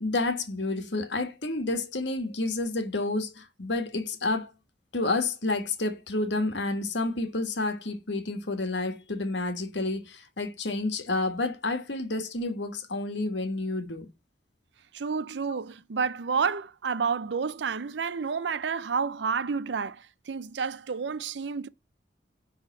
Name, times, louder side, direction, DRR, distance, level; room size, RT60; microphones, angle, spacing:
voice 1, 0.0-4.5 4.9-14.1 15.5-15.6, left 2 dB, 75° left, 1.6 m, -30 dB
voice 2, 14.9-20.0 20.3-21.7, right 5 dB, 75° right, 0.5 m, -30 dB
9.8 x 3.6 x 5.5 m
head